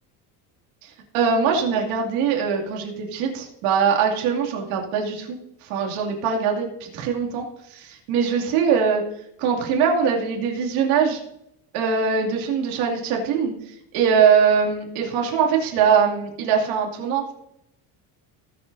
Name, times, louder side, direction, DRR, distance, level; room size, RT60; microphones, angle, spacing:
voice 1, 0.8-5.4 5.6-7.5 7.7-9.0 9.4-11.2 11.7-13.5 13.9-17.3, right 6 dB, 80° right, 0 dB, 2.8 m, -22 dB
20.0 x 7.4 x 2.7 m, 0.79 s
cardioid pair, 145°, 48 cm